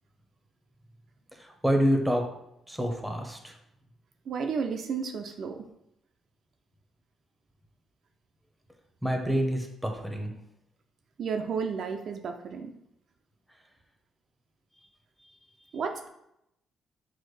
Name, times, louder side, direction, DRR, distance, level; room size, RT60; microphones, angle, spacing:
voice 1, 1.3-2.2 2.7-3.5 9.0-10.3 15.2-15.3, equal, ahead, 3 dB, 0.7 m, -27 dB
voice 2, 4.3-5.7 11.2-12.8 15.7-16.1, right 5 dB, 60° right, 5 dB, 0.4 m, -32 dB
6.1 x 2.1 x 3.2 m, 0.80 s
cardioid pair, 90°, 0 cm